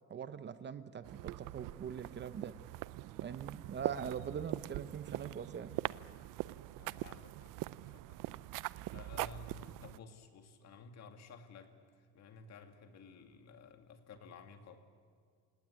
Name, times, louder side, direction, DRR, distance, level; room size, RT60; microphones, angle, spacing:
voice 1, 0.1-2.5 3.2-5.7, right 7 dB, 30° right, 12 dB, 0.8 m, -42 dB
sound 1, 1.0-10.0, right 17 dB, 65° right, 0.6 m, -42 dB
voice 2, 6.7-7.5 7.8-8.2 8.9-11.7 12.1-14.8, left 5 dB, 50° left, 7 dB, 2.4 m, -54 dB
27.0 x 18.5 x 9.9 m, 2.1 s
cardioid pair, 140°, 35 cm